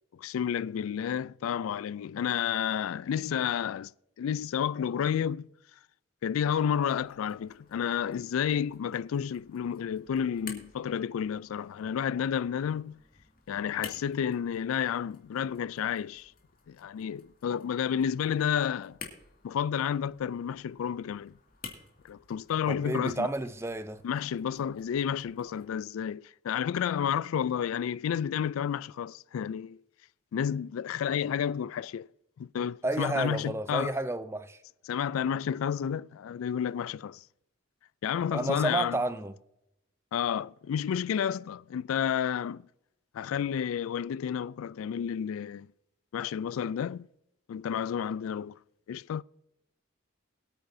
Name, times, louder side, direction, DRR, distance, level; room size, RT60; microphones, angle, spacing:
voice 1, 0.1-3.9 4.2-5.5 6.2-13.0 13.5-16.3 16.7-19.0 19.4-21.3 22.0-23.3 24.0-29.8 30.3-32.1 32.4-33.9 34.9-37.2 38.0-39.0 40.1-42.6 43.1-45.7 46.1-47.1 47.5-48.6 48.9-49.2, left 8 dB, 90° left, 0.3 m, -31 dB
sound 1, 6.8-25.8, left 5 dB, 45° left, 2.2 m, -52 dB
voice 2, 22.7-24.0 32.8-34.6 38.3-39.3, right 2 dB, 15° right, 0.5 m, -31 dB
22.0 x 8.9 x 2.7 m
head